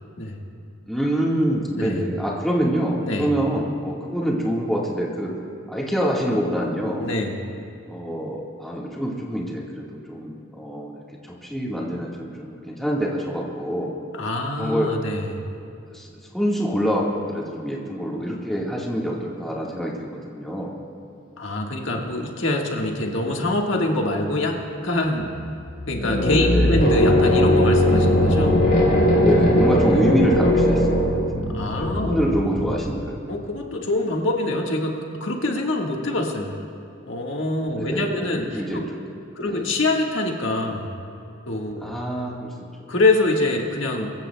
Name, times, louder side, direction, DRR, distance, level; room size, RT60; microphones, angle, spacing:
voice 1, 0.9-5.3 5.7-7.1 7.9-10.9 11.2-13.9 14.6-14.9 15.9-16.1 16.3-20.7 26.3-26.8 29.2-30.9 31.4-33.2 37.7-39.0 39.4-39.7 41.8-42.5, equal, ahead, -4 dB, 1.6 m, -26 dB
voice 2, 3.0-3.3 7.0-7.4 14.1-15.4 21.4-25.3 25.9-28.6 31.5-32.2 33.3-36.6 37.1-38.9 39.3-40.9 41.5-41.9 42.9-44.1, left 2 dB, 70° left, 0 dB, 1.6 m, -25 dB
sound 1, 25.2-33.1, left 1 dB, 50° left, 3.5 m, -19 dB
22.5 x 15.0 x 2.2 m, 2.7 s
head